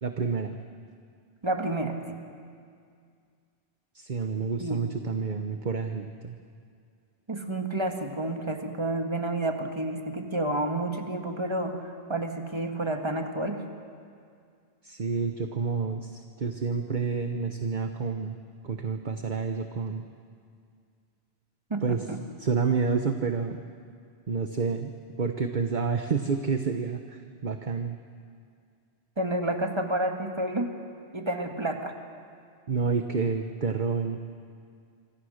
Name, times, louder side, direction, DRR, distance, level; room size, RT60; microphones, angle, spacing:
voice 1, 0.0-0.6 3.9-6.4 14.8-18.3 18.6-20.1 21.8-22.0 22.4-23.6 24.3-24.9 25.2-28.0 32.7-34.2, right 5 dB, 45° right, 6 dB, 1.1 m, -29 dB
voice 2, 1.4-2.2 4.6-4.8 7.3-13.6 21.7-22.2 29.2-30.7 31.1-31.9, right 1 dB, 25° right, 4 dB, 1.8 m, -30 dB
27.0 x 24.5 x 6.5 m, 2.3 s
omnidirectional pair, 1.1 m